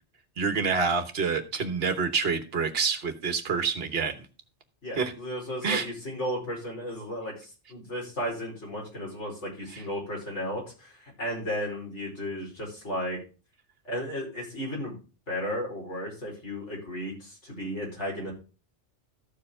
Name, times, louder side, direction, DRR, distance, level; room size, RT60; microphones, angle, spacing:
voice 1, 0.4-4.3 4.9-5.1 5.6-5.9 9.7-9.8, right 5 dB, 60° right, 9 dB, 1.4 m, -27 dB
voice 2, 4.8-13.2 13.8-14.9 15.3-18.3, equal, 85° left, -3 dB, 5.1 m, -34 dB
14.0 x 4.8 x 4.9 m, 0.33 s
omnidirectional pair, 1.2 m